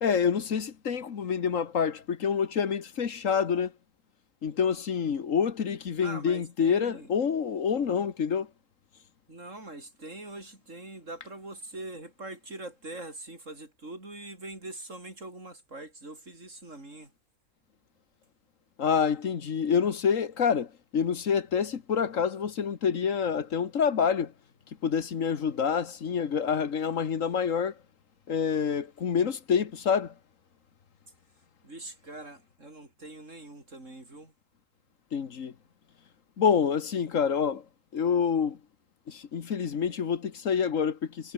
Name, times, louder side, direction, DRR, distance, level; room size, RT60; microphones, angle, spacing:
voice 1, 0.0-3.7 4.4-8.5 18.8-24.3 24.8-27.7 28.3-30.1 35.1-35.5 36.4-37.6 37.9-38.6 39.1-41.3, left 7 dB, 75° left, 1.8 m, -27 dB
voice 2, 6.0-7.1 9.3-17.1 31.6-34.3, right 2 dB, 70° right, 6.1 m, -43 dB
omnidirectional pair, 1.3 m